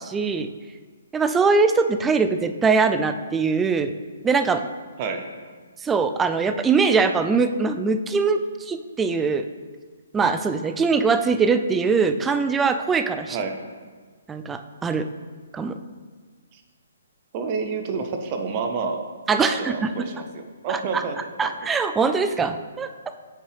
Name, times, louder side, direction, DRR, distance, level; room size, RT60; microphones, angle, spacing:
voice 1, 0.1-0.5 1.1-3.9 4.2-4.6 5.8-9.5 10.1-13.4 14.3-15.1 15.5-15.8 19.3-19.9 20.7-21.0 21.4-22.9, right 4 dB, 10° right, 9 dB, 0.3 m, -22 dB
voice 2, 17.3-19.0 19.4-21.2 21.4-21.5, right 5 dB, 35° right, 5 dB, 0.7 m, -29 dB
7.8 x 4.4 x 3.3 m, 1.5 s
figure-of-eight pair, 135°, 0 cm